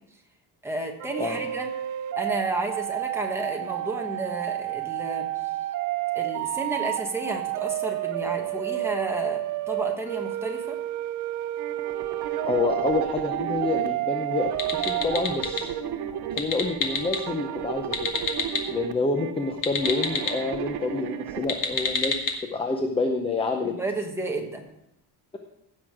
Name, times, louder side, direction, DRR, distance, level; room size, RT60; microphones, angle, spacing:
voice 1, 0.6-1.7 2.2-5.3 6.1-10.8 23.6-24.6, right 2 dB, 5° right, 1 dB, 1.2 m, -32 dB
sound 1, 1.0-15.4, right 15 dB, 45° right, 0.4 m, -30 dB
sound 2, 11.6-21.4, right 9 dB, 65° right, 0.9 m, -34 dB
voice 2, 12.5-15.7 16.3-17.9 18.7-23.7, left 3 dB, 15° left, 4 dB, 0.6 m, -28 dB
sound 3, 14.5-15.6 16.2-17.2 17.8-18.6 19.5-20.3 21.4-22.3, left 5 dB, 50° left, 1.5 m, -28 dB
16.0 x 6.3 x 4.8 m, 0.80 s
cardioid pair, 180°, 42 cm